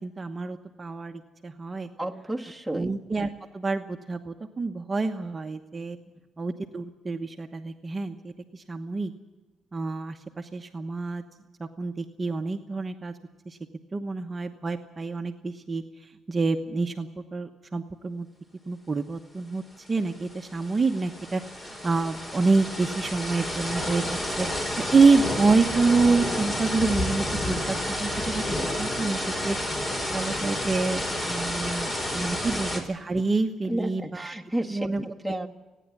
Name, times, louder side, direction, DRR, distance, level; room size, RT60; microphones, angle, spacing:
voice 1, 0.0-1.9 2.7-6.0 6.4-9.1 9.7-11.2 11.6-13.1 13.5-13.6 13.9-18.3 18.7-24.5 24.8-28.4 28.8-29.6 30.1-34.3 34.7-35.5, right 4 dB, 30° right, 5 dB, 1.1 m, -27 dB
voice 2, 2.0-2.9 6.1-6.2 32.5-32.6 33.7-35.5, right 1 dB, ahead, 2 dB, 2.0 m, -32 dB
sound 1, 19.9-20.0 20.2-32.8, left 1 dB, 30° left, 4.5 m, -30 dB
29.5 x 10.0 x 9.7 m, 1.2 s
cardioid pair, 90°, 0 cm